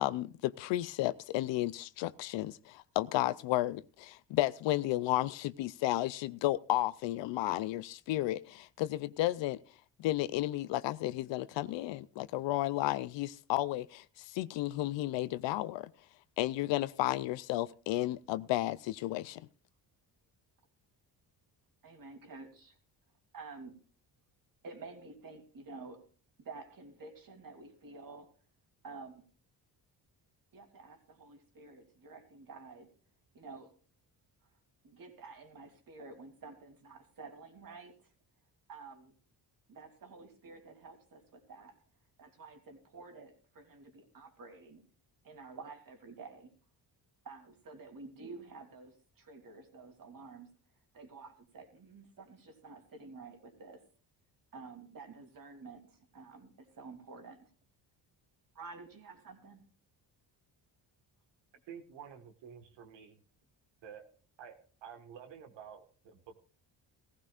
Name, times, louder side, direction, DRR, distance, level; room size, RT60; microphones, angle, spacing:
voice 1, 0.0-9.6 10.0-15.9 16.4-19.4, left 16 dB, 85° left, 0.6 m, -33 dB
voice 2, 21.8-22.8 23.3-23.8 24.6-26.0 26.4-28.3 28.8-29.2 30.5-32.9 33.3-33.7 34.8-38.1 38.7-39.1 39.7-41.8 42.2-44.8 45.2-46.5 47.2-50.5 50.9-53.8 54.5-57.5 58.5-59.7, right 4 dB, 50° right, 3.1 m, -50 dB
voice 3, 61.7-63.2 63.8-64.1 64.4-66.4, right 7 dB, 85° right, 1.7 m, -50 dB
17.0 x 15.0 x 2.4 m
cardioid pair, 95°, 43 cm